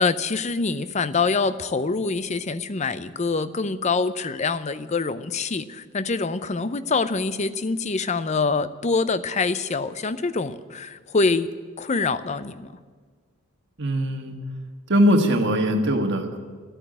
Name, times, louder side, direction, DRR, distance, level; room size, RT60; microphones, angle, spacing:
voice 1, 0.0-11.5 11.8-12.7, left 4 dB, 30° left, 13 dB, 0.6 m, -25 dB
voice 2, 13.8-14.3 14.9-16.4, equal, 50° right, 4 dB, 1.5 m, -21 dB
14.0 x 9.0 x 9.9 m, 1.5 s
head